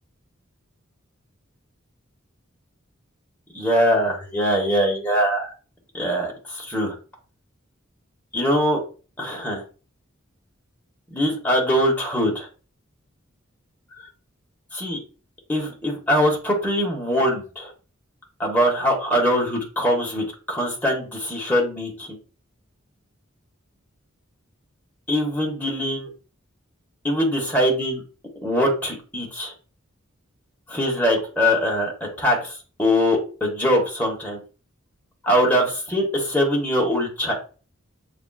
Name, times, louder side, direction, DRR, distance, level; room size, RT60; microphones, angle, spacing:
voice 1, 3.5-5.5 5.9-6.9 8.3-8.8 9.2-9.6 11.1-12.5 14.7-15.0 15.5-17.7 18.4-22.2 25.1-26.1 27.0-28.0 28.4-29.5 30.7-34.4 35.2-37.3, equal, 10° left, -2 dB, 1.1 m, -22 dB
6.7 x 2.4 x 2.3 m, 0.37 s
head